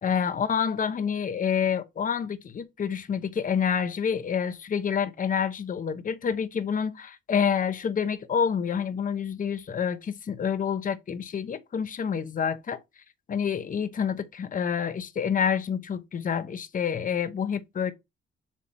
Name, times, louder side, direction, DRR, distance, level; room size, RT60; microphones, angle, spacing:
voice 1, 0.0-12.8 13.3-17.9, left 7 dB, 45° left, 0.9 m, -28 dB
7.4 x 3.6 x 4.3 m
cardioid pair, 90°, 20 cm